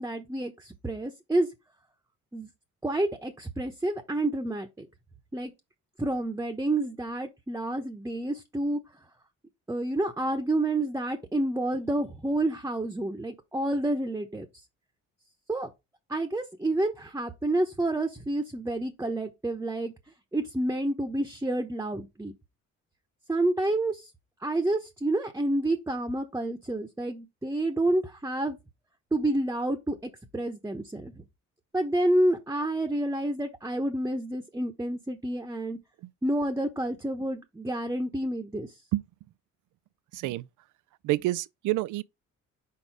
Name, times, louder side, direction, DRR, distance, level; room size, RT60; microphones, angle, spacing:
voice 1, 0.0-1.5 2.3-2.5 2.8-4.9 5.3-5.5 6.0-8.8 9.7-14.4 15.5-15.7 16.1-19.9 20.3-22.3 23.3-24.1 24.4-28.6 29.1-31.1 31.7-35.8 36.2-38.7, right 1 dB, 10° right, 1.0 m, -29 dB
voice 2, 40.1-40.5 41.0-42.0, right 17 dB, 85° right, 0.5 m, -28 dB
4.7 x 4.6 x 4.7 m
cardioid pair, 90°, 30 cm